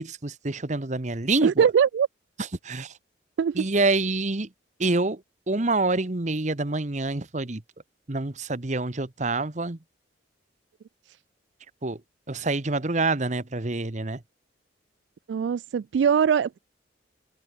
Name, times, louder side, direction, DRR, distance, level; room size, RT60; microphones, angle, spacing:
voice 1, 0.0-1.7 2.6-2.9 3.5-4.5 4.8-5.2 5.5-7.6 8.1-9.8 11.8-12.0 12.3-14.2, right 2 dB, 40° right, 1.2 m, -26 dB
voice 2, 1.4-2.1 3.4-3.7 15.3-16.6, right 7 dB, 70° right, 0.3 m, -22 dB
head